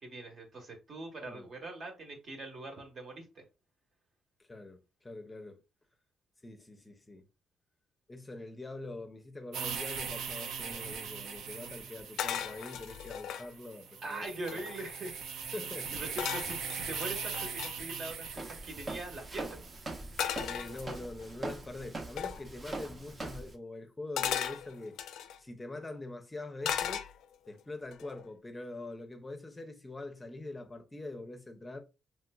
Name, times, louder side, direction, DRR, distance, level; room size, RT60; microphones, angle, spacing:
voice 1, 0.0-3.4 14.0-15.1 15.9-19.6, right 2 dB, 50° right, 1.1 m, -42 dB
voice 2, 4.4-5.6 6.4-7.3 8.1-14.3 14.5-14.6 15.5-16.1 20.5-25.0 25.4-27.0 27.5-31.8, left 2 dB, 20° left, 0.5 m, -44 dB
sound 1, 9.5-20.8, right 6 dB, 80° right, 0.5 m, -41 dB
sound 2, 12.2-13.5 14.1-14.2 14.3-15.0 16.2-17.7 20.2-21.3 22.2-22.4 24.2-25.4 26.6-27.5 27.9-28.3, left 9 dB, 80° left, 0.3 m, -36 dB
Walk footsteps, 18.3-23.5, right 2 dB, 30° right, 0.7 m, -42 dB
3.1 x 2.8 x 2.3 m
cardioid pair, 90°, 0 cm